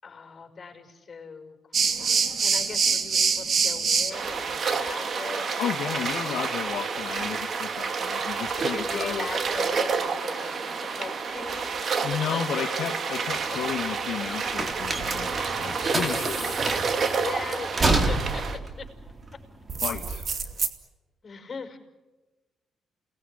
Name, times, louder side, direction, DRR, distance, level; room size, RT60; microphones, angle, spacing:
voice 1, 0.0-1.6 1.8-5.6 6.1-6.6 8.6-12.0 16.1-16.7 17.2-18.4 18.8-18.9 21.2-21.8, left 5 dB, 35° left, 5 dB, 5.5 m, -40 dB
sound 1, 1.7-18.6 19.7-20.7, right 5 dB, 50° right, 2.4 m, -28 dB
voice 2, 5.6-9.3 12.0-16.5 19.8-20.3, left 9 dB, 75° left, 4 dB, 1.6 m, -33 dB
sound 2, 13.3-20.1, right 2 dB, 30° right, 3.9 m, -29 dB
29.0 x 19.5 x 9.9 m, 1.2 s
cardioid pair, 90°, 0 cm